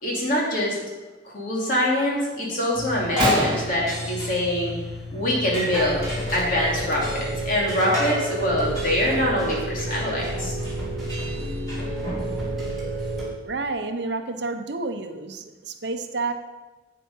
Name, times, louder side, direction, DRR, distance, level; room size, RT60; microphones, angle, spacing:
voice 1, 0.0-0.8 1.2-4.7 5.1-10.7, left 1 dB, 45° left, -3 dB, 2.8 m, -24 dB
sound 1, 2.7-13.2, left 2 dB, 20° left, 3.2 m, -31 dB
Gunshot gunfire, 3.2-4.8 5.1-5.5 5.7-6.0 6.8-6.9 7.5-7.6 8.0-9.6, right 1 dB, 25° right, 1.9 m, -29 dB
sound 2, 5.7-13.3, right 3 dB, ahead, 2.9 m, -32 dB
voice 2, 13.4-16.3, right 3 dB, 60° right, 7 dB, 0.7 m, -30 dB
8.5 x 8.1 x 5.5 m, 1.2 s
head